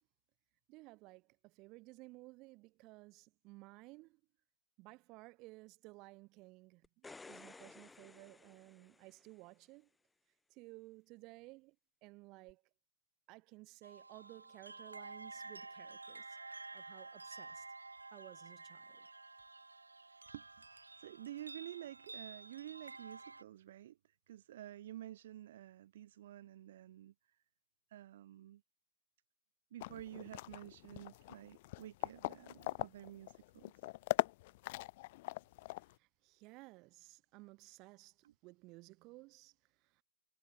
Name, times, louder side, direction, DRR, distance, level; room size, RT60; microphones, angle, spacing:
voice 1, 0.7-4.2 4.8-9.9 10.5-11.7 12.0-12.6 13.3-16.4 16.7-17.6 18.1-19.1 36.0-38.1 38.4-39.5, right 23 dB, 35° right, 3.4 m, -56 dB
sound 1, 6.8-9.4 12.5-12.6, left 3 dB, 10° left, 1.6 m, -56 dB
sound 2, 13.8-23.4, right 3 dB, 80° right, 0.5 m, -51 dB
voice 2, 20.3-20.6 21.0-24.0 24.3-27.1 27.9-28.6 29.7-33.7 38.2-38.3, right 12 dB, 55° right, 0.8 m, -50 dB
sound 3, 29.8-35.9, left 20 dB, 45° left, 0.4 m, -41 dB
figure-of-eight pair, 105°, 0 cm